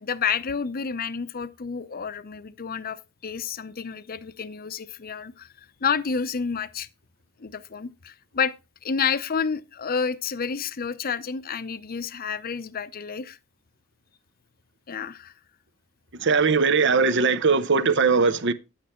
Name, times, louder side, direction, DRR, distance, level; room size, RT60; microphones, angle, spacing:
voice 1, 0.0-5.5 5.8-6.9 7.4-8.5 8.8-13.4 14.9-15.3, left 6 dB, 45° left, 0.7 m, -29 dB
voice 2, 16.2-18.5, right 4 dB, 60° right, 0.9 m, -20 dB
10.0 x 8.6 x 4.3 m
head